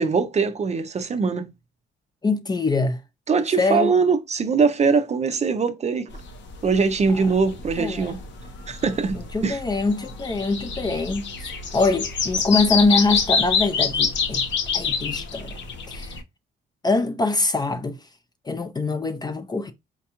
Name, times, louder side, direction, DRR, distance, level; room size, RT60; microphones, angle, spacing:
voice 1, 0.0-1.5 3.3-6.1 6.6-8.2 8.7-9.2 9.4-9.6, right 5 dB, 35° right, 0.5 m, -22 dB
voice 2, 2.2-3.0 3.6-3.9 7.1-7.3 7.8-8.2 9.1-14.5 14.7-15.6 15.9-16.2 16.8-18.0 18.4-19.7, left 3 dB, 20° left, 0.4 m, -24 dB
sound 1, 6.1-16.2, left 5 dB, 65° left, 0.7 m, -26 dB
4.4 x 2.3 x 2.8 m
cardioid pair, 90°, 20 cm